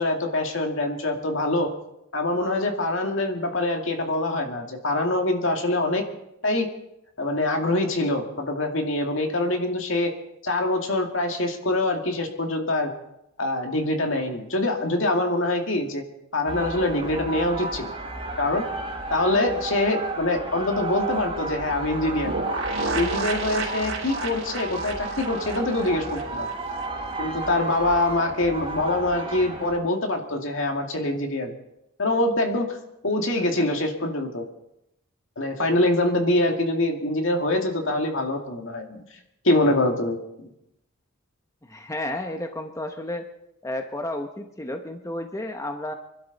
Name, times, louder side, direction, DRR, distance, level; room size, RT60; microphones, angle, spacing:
voice 1, 0.0-1.7 2.1-6.0 6.4-6.7 7.2-10.1 10.4-12.9 13.4-16.0 16.3-17.9 18.4-18.7 19.1-22.3 23.0-26.5 27.2-31.5 32.0-32.8 33.0-34.5 35.4-39.0 39.4-40.5, left 2 dB, 70° left, 3 dB, 2.3 m, -24 dB
sound 1, 16.5-29.8, right 2 dB, 25° right, 3.1 m, -33 dB
sound 2, 22.2-26.9 27.1-27.2 27.5-27.6, right 3 dB, 75° right, 3.8 m, -32 dB
voice 2, 41.6-43.3 43.6-45.9, left 1 dB, 15° left, 5 dB, 0.9 m, -32 dB
25.0 x 12.0 x 4.2 m, 0.84 s
head